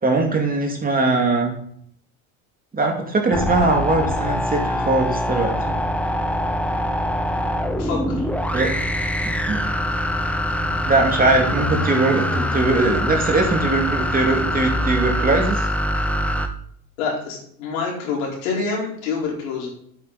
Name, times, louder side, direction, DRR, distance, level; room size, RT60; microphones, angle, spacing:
voice 1, 0.0-1.5 2.7-5.8 8.5-8.7 9.5-9.6 10.8-15.6, right 3 dB, 20° right, 1 dB, 2.5 m, -21 dB
sound 1, 3.3-16.5, left 1 dB, 5° left, 0.8 m, -23 dB
voice 2, 7.7-8.3 17.0-19.7, left 4 dB, 85° left, -3 dB, 4.5 m, -27 dB
8.5 x 8.5 x 4.1 m, 0.64 s
supercardioid pair, 105°, 41 cm